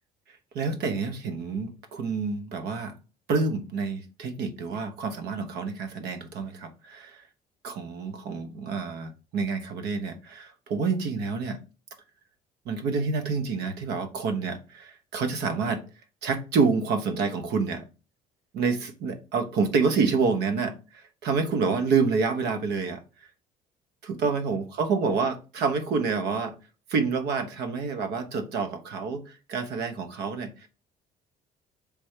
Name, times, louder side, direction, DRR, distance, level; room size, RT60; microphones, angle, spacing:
voice 1, 0.5-2.9 3.3-7.2 7.6-11.6 12.7-15.8 16.2-17.8 18.5-23.0 24.0-26.6 26.9-30.7, right 4 dB, 75° right, 0.9 m, -28 dB
3.4 x 3.2 x 4.7 m
cardioid pair, 110°, 17 cm